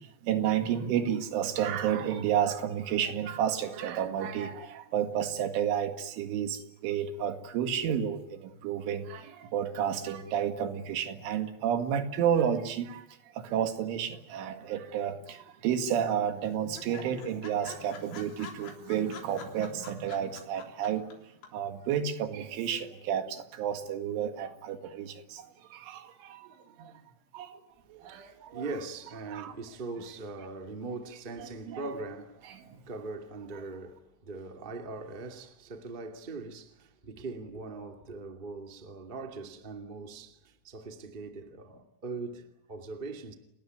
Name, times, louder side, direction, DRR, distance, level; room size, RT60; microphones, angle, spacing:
voice 1, 0.2-13.1 13.3-21.1 21.5-26.9 27.3-27.6 27.9-28.6 29.3-29.5 31.7-31.8 32.7-32.8, right 9 dB, 85° right, 4.4 m, -31 dB
sound 1, 15.1-15.7 16.0-16.1 16.4-16.5 16.8-21.1 21.4-21.5, left 7 dB, 70° left, 5.7 m, -46 dB
voice 2, 28.0-43.3, right 3 dB, 25° right, 1.1 m, -41 dB
29.5 x 19.5 x 9.5 m
omnidirectional pair, 5.4 m